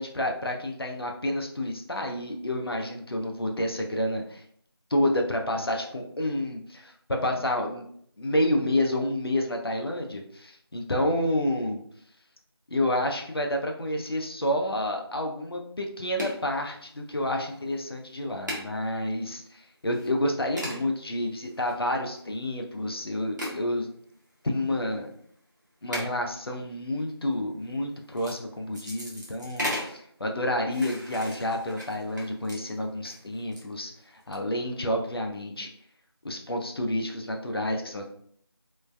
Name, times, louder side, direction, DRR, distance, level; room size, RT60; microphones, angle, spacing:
voice 1, 0.0-4.4 4.9-7.9 8.2-11.8 12.7-23.9 24.4-25.1 25.8-35.7 36.2-38.1, left 1 dB, 60° left, 2 dB, 0.5 m, -29 dB
sound 1, 16.2-16.5 17.2-17.5 17.8-17.9 18.5-18.7 19.3-19.4 19.9-20.1 20.6-20.8 21.4-22.2 23.4-23.6 24.5-24.6 25.9-26.1 27.0-27.2 28.0-28.4 28.7-30.0 30.7-33.6 34.1-34.3, equal, 45° right, 0.7 m, -36 dB
3.1 x 2.1 x 2.2 m, 0.65 s
figure-of-eight pair, 175°, 14 cm